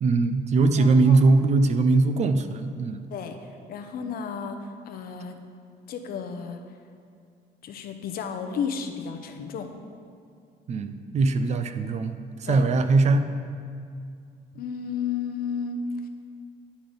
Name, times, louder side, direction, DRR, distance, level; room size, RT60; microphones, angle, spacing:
voice 1, 0.0-3.1 10.7-13.3, right 3 dB, 40° right, 9 dB, 0.4 m, -21 dB
voice 2, 0.8-1.2 3.1-5.4 5.9-6.8 7.6-9.7 12.5-12.7 14.5-16.1, left 6 dB, 60° left, 6 dB, 0.7 m, -33 dB
9.9 x 3.9 x 5.1 m, 2.3 s
cardioid pair, 110°, 17 cm